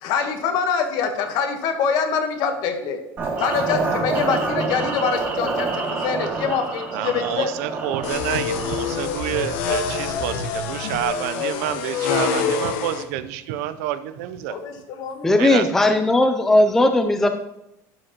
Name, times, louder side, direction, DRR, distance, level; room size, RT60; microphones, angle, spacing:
voice 1, 0.0-3.0 3.4-7.5 14.5-15.6, left 6 dB, 55° left, 6 dB, 1.1 m, -25 dB
sound 1, 3.2-9.1, right 3 dB, 25° right, 1.4 m, -27 dB
voice 2, 6.9-14.6 15.4-16.0, right 12 dB, 90° right, 13 dB, 0.5 m, -28 dB
sound 2, 8.0-13.0, left 6 dB, 75° left, 0.8 m, -26 dB
voice 3, 15.2-17.3, left 1 dB, 5° left, 7 dB, 0.3 m, -17 dB
12.0 x 4.9 x 2.9 m, 0.85 s
cardioid pair, 165°, 8 cm